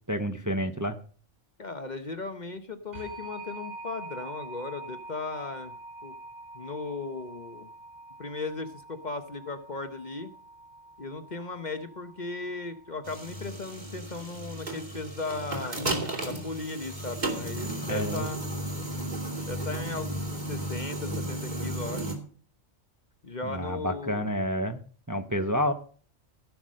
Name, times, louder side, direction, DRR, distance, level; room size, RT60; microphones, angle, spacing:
voice 1, 0.1-1.0 17.9-18.3 23.5-25.7, equal, 15° right, 6 dB, 0.8 m, -29 dB
voice 2, 1.6-5.8 6.0-6.1 6.5-7.7 8.2-10.3 11.0-16.0 16.2-18.4 19.4-22.1 23.2-24.3, left 3 dB, 40° left, 8 dB, 1.0 m, -37 dB
sound 1, 2.9-13.5, right 2 dB, 60° right, 7.9 m, -45 dB
sound 2, 13.0-22.1, right 1 dB, 35° right, 2.8 m, -34 dB
16.0 x 6.0 x 6.4 m, 0.43 s
omnidirectional pair, 1.3 m